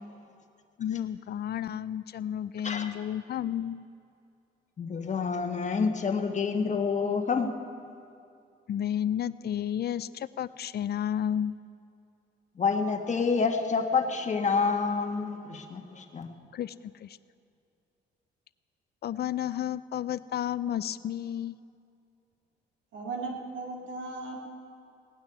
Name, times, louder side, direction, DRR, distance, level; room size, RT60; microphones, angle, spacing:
voice 1, 0.8-3.8 8.7-11.6 16.5-16.7 17.0-17.2 19.0-21.6, left 10 dB, 55° left, 16 dB, 0.5 m, -32 dB
voice 2, 4.8-7.5 12.6-16.3, left 5 dB, 35° left, 4 dB, 1.4 m, -28 dB
voice 3, 22.9-24.4, right 3 dB, 70° right, 0 dB, 2.6 m, -36 dB
18.0 x 6.3 x 9.5 m, 2.5 s
cardioid pair, 90°, 20 cm